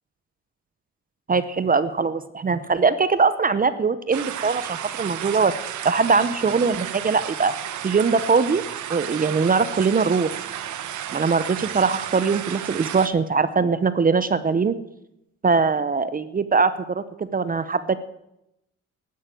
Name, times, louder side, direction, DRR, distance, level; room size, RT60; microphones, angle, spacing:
voice 1, 1.3-5.5 5.8-7.5 7.8-8.6 8.9-10.4 11.1-14.7 15.4-18.0, right 5 dB, 30° right, 13 dB, 0.7 m, -21 dB
sound 1, 4.1-13.1, right 10 dB, 75° right, 1.1 m, -32 dB
11.5 x 9.4 x 7.6 m, 0.83 s
cardioid pair, 90°, 30 cm